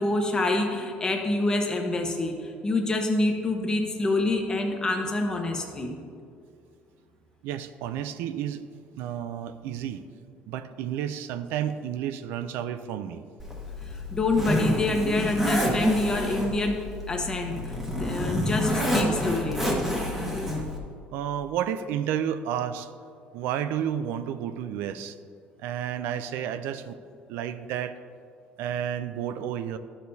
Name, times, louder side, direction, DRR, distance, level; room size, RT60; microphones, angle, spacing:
voice 1, 0.0-6.0 13.8-19.7, left 2 dB, 20° left, 2 dB, 1.0 m, -27 dB
voice 2, 7.4-8.6 8.9-10.0 10.5-13.2 21.1-22.9 23.3-25.2 25.6-27.0 27.3-28.0 28.6-29.8, right 9 dB, 85° right, 12 dB, 0.4 m, -31 dB
Zipper (clothing), 13.4-20.8, left 1 dB, 10° right, 1.4 m, -28 dB
12.0 x 6.6 x 2.7 m, 2.3 s
cardioid pair, 135°, 4 cm